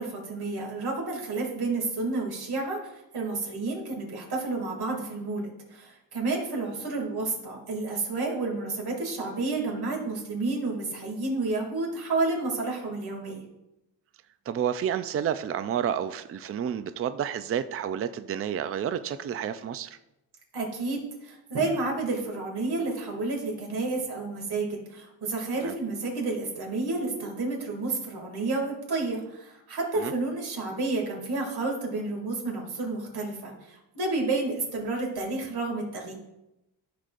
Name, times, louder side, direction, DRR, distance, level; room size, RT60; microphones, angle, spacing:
voice 1, 0.0-2.8 3.1-13.4 20.5-36.1, right 3 dB, 75° right, -1 dB, 2.5 m, -30 dB
voice 2, 14.5-20.0 25.6-25.7 30.0-30.1, right 9 dB, 35° right, 11 dB, 0.4 m, -30 dB
13.5 x 6.6 x 2.5 m, 0.91 s
wide cardioid pair, 135°, 39 cm